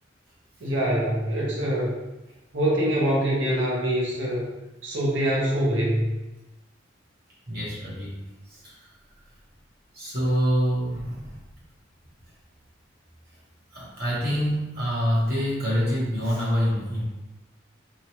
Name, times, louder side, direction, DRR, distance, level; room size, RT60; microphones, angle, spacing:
voice 1, 0.6-1.9 2.5-4.5 4.8-6.0, right 1 dB, 80° right, -4 dB, 0.8 m, -24 dB
voice 2, 7.5-8.1 8.5-8.8 9.9-11.3 13.7-17.0, equal, 55° right, -7 dB, 0.9 m, -26 dB
2.8 x 2.2 x 2.8 m, 1.0 s
head